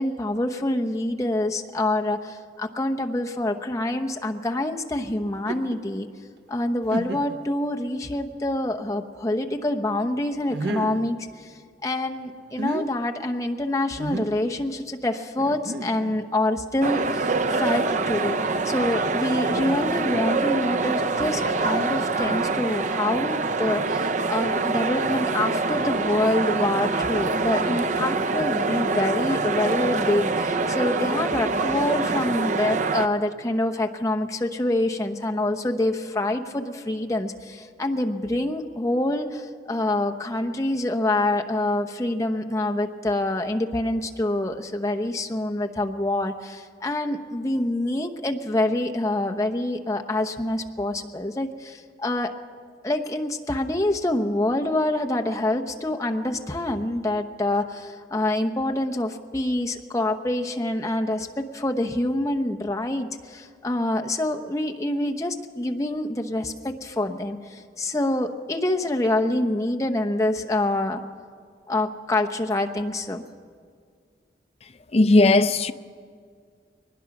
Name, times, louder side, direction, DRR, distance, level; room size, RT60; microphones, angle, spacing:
voice 1, 0.0-6.1 6.5-11.5 11.8-18.4 18.6-52.3 52.8-71.0 71.7-73.2, left 1 dB, 20° left, 0.9 m, -26 dB
sound 1, 5.3-5.8 6.4-6.5 6.9-7.5 8.1-8.2 10.5-11.1 12.4-12.9 14.0-14.4 15.4-16.2, right 2 dB, 70° right, 0.9 m, -31 dB
sound 2, 16.8-33.1, right 3 dB, 40° right, 0.6 m, -25 dB
voice 2, 74.9-75.7, left 2 dB, 35° left, 0.5 m, -17 dB
22.0 x 20.0 x 6.0 m
head